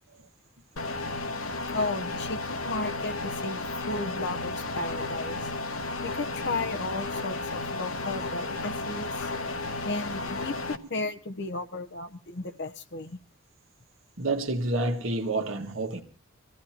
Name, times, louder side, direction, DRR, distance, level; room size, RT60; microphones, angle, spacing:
sound 1, 0.8-10.8, left 3 dB, 85° left, 1.3 m, -33 dB
voice 1, 1.7-3.6 3.9-5.5 6.0-9.3 9.8-10.5 10.9-13.2, left 2 dB, 55° left, 1.0 m, -34 dB
voice 2, 14.2-16.0, right 2 dB, 70° right, 1.9 m, -28 dB
24.5 x 15.0 x 2.9 m
head